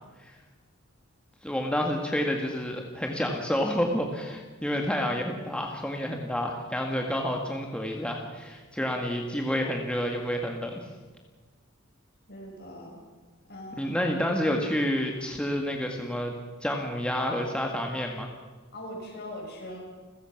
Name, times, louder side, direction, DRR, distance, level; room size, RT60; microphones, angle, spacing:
voice 1, 1.4-10.8 13.7-16.3 16.6-18.3, equal, 5° left, 1 dB, 1.7 m, -29 dB
voice 2, 12.3-13.0 13.5-14.0 18.7-19.8, left 1 dB, 50° left, 0 dB, 6.4 m, -41 dB
29.5 x 15.5 x 5.9 m, 1.3 s
head